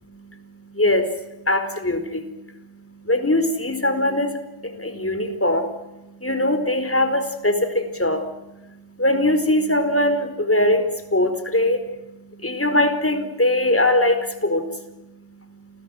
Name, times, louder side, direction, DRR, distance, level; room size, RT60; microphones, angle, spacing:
voice 1, 1.5-2.0 3.1-4.3 5.0-5.6 6.2-8.2 9.0-10.8 11.1-11.8 12.4-14.6, left 1 dB, 30° left, 8 dB, 4.4 m, -20 dB
29.0 x 22.0 x 6.5 m, 0.98 s
wide cardioid pair, 70°, 47 cm